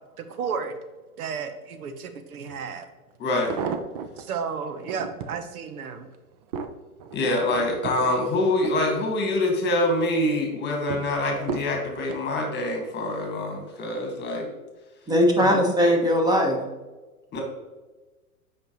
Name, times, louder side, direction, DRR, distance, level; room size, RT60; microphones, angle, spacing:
voice 1, 0.2-0.8 1.2-2.9 4.2-6.1, right 6 dB, 70° right, 9 dB, 0.9 m, -33 dB
sound 1, 2.5-2.6 3.2-4.2 4.7-5.4 6.0-9.4 9.8-10.2 10.9-12.3 13.0-13.4 13.7-13.8, right 5 dB, 30° right, 0.4 m, -35 dB
voice 2, 3.2-3.6 7.1-14.5 15.4-15.6 17.3-17.4, left 1 dB, 25° left, 2 dB, 1.7 m, -25 dB
voice 3, 15.1-16.6, equal, 10° right, 2 dB, 1.1 m, -19 dB
7.9 x 5.4 x 3.0 m, 1.2 s
hypercardioid pair, 120°, 45 cm